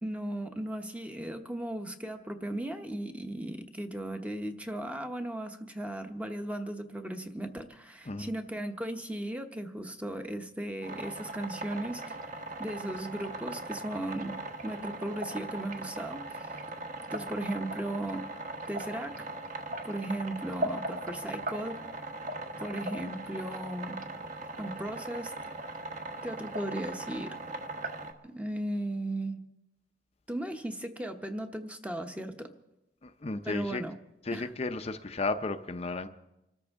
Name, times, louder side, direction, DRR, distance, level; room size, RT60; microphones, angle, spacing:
voice 1, 0.0-16.6 17.1-19.3 19.8-21.9 22.6-24.0 24.6-25.4 26.2-27.4 28.2-29.4 30.3-32.5 33.4-33.9 34.3-34.5, right 1 dB, 10° right, 6 dB, 0.9 m, -36 dB
sound 1, 10.8-28.1, right 2 dB, 45° right, 1.2 m, -39 dB
voice 2, 33.0-33.8 34.2-36.1, left 3 dB, 35° left, 7 dB, 0.6 m, -33 dB
26.0 x 13.5 x 3.6 m, 0.89 s
head